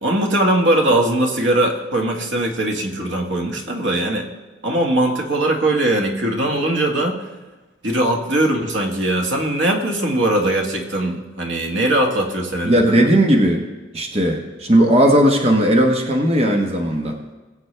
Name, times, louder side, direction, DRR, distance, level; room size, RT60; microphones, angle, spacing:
voice 1, 0.0-4.3 4.6-7.2 7.8-13.0, right 1 dB, 80° right, 1 dB, 1.8 m, -20 dB
voice 2, 12.6-13.6 13.9-17.2, right 1 dB, 35° right, 2 dB, 1.1 m, -16 dB
21.0 x 8.0 x 3.3 m, 1.2 s
head